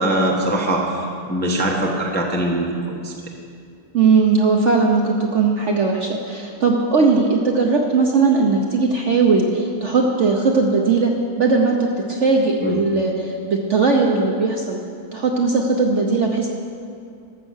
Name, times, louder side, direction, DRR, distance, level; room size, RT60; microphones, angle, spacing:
voice 1, 0.0-3.1 12.6-12.8, right 1 dB, 10° left, -1 dB, 0.7 m, -22 dB
voice 2, 3.9-11.1 11.4-14.8 15.1-16.5, right 4 dB, 55° right, 1 dB, 0.9 m, -18 dB
13.5 x 6.9 x 6.3 m, 2.4 s
omnidirectional pair, 1.9 m